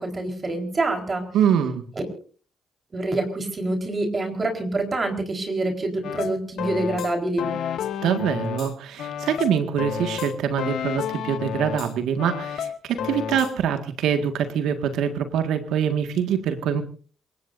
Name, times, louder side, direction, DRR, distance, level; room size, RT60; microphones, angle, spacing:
voice 1, 0.0-1.3 2.9-7.5, right 2 dB, 35° right, 4 dB, 4.3 m, -26 dB
voice 2, 1.3-1.8 8.0-16.8, right 8 dB, 80° right, 7 dB, 1.8 m, -24 dB
sound 1, 6.0-8.7 9.0-11.9 12.2-13.6, left 8 dB, 75° left, 1.9 m, -30 dB
28.0 x 17.5 x 2.7 m, 0.41 s
supercardioid pair, 75°, 0 cm